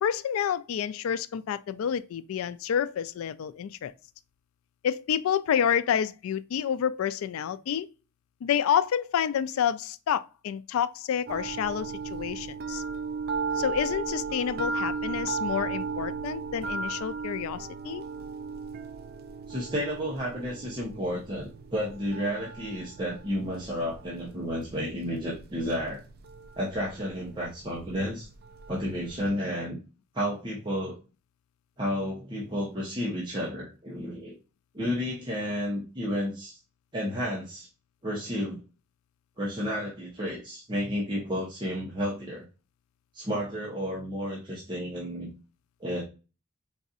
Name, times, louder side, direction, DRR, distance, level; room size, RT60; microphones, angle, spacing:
voice 1, 0.0-3.9 4.8-7.9 8.4-12.8 13.6-18.0, left 8 dB, 85° left, 0.3 m, -29 dB
sound 1, 11.3-29.3, right 4 dB, 50° right, 0.4 m, -36 dB
voice 2, 19.5-26.0 26.6-28.3 28.7-29.8 30.1-31.0 31.8-34.4 34.7-36.6 36.9-37.7 38.0-38.6 39.4-42.4 43.1-45.3 45.8-46.0, equal, 25° right, 0.8 m, -31 dB
4.0 x 2.6 x 2.4 m
head